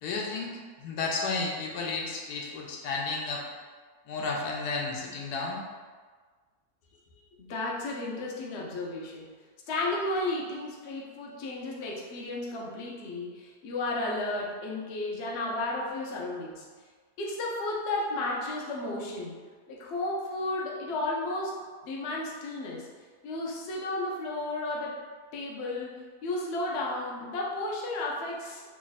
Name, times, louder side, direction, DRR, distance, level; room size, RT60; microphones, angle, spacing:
voice 1, 0.0-3.5 4.1-5.6, left 3 dB, 80° left, -1 dB, 1.2 m, -32 dB
voice 2, 7.4-9.3 9.7-16.6 17.2-19.4 19.7-21.6 21.8-22.9 23.2-25.0 25.3-28.6, left 2 dB, 60° left, -3 dB, 0.7 m, -33 dB
3.0 x 2.4 x 4.0 m, 1.5 s
omnidirectional pair, 1.7 m